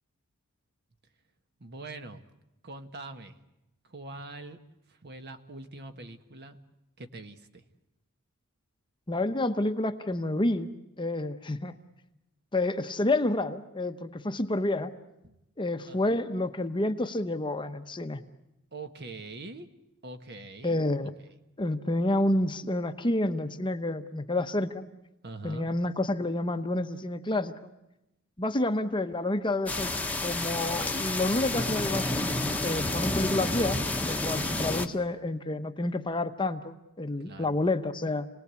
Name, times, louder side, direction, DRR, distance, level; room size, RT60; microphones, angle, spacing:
voice 1, 1.6-2.2 2.6-3.4 3.8-4.6 4.9-6.6 7.0-7.6 15.2-15.4 15.8-16.2 18.7-19.7 20.0-21.1 25.2-25.7 34.3-34.7 37.2-37.6, right 2 dB, 50° right, 7 dB, 1.5 m, -43 dB
voice 2, 9.1-10.7 11.0-11.8 12.5-14.9 15.6-18.2 20.6-21.1 21.6-24.9 25.4-27.6 28.4-29.9 30.2-38.3, left 2 dB, 20° left, 8 dB, 0.9 m, -29 dB
sound 1, 29.7-34.9, left 2 dB, 5° left, 1.2 m, -30 dB
28.5 x 19.5 x 8.3 m, 0.92 s
head